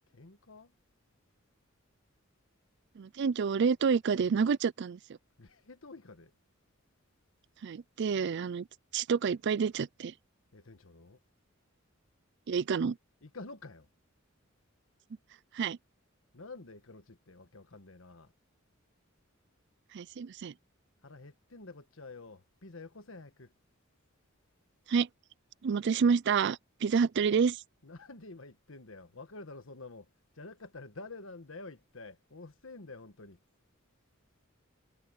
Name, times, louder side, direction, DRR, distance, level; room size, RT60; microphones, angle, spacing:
voice 1, 0.1-0.7 5.4-6.3 10.5-11.2 13.2-13.9 16.3-18.3 21.0-23.5 27.8-30.1 30.3-33.4, left 3 dB, 75° left, 1.4 m, -49 dB
voice 2, 3.0-5.0 7.6-8.7 8.9-10.1 12.5-13.0 15.5-15.8 19.9-20.5 24.9-25.1 25.6-27.6, right 6 dB, 60° right, 0.4 m, -28 dB
head